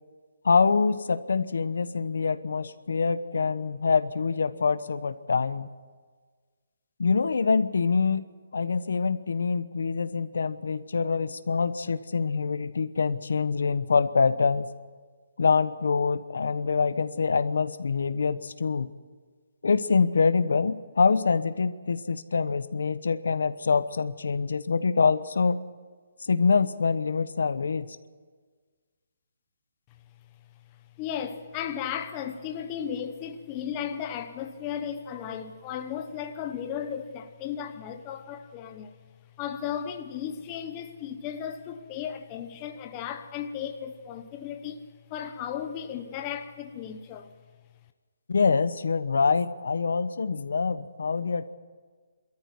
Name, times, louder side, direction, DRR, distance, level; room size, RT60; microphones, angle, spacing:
voice 1, 0.4-5.7 7.0-8.3 8.5-14.7 15.4-18.9 19.6-25.6 26.2-28.0 48.3-51.5, left 5 dB, 75° left, 1.0 m, -25 dB
voice 2, 31.0-38.9 39.4-47.3, left 8 dB, 15° left, 0.9 m, -35 dB
24.5 x 13.5 x 9.7 m
hypercardioid pair, 175°, 0 cm